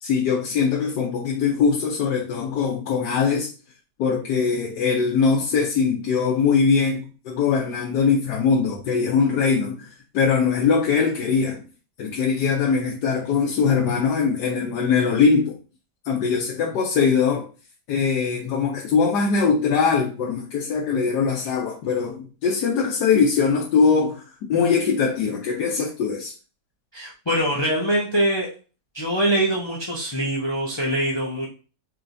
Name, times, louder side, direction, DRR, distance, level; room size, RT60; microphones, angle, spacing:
voice 1, 0.0-3.5 4.0-9.9 10.1-11.6 12.0-15.6 16.0-17.4 17.9-26.3, left 5 dB, 85° left, -2 dB, 1.3 m, -21 dB
voice 2, 26.9-28.5 28.9-31.5, right 1 dB, 30° left, -4 dB, 0.4 m, -23 dB
4.4 x 3.1 x 2.6 m, 0.35 s
omnidirectional pair, 1.7 m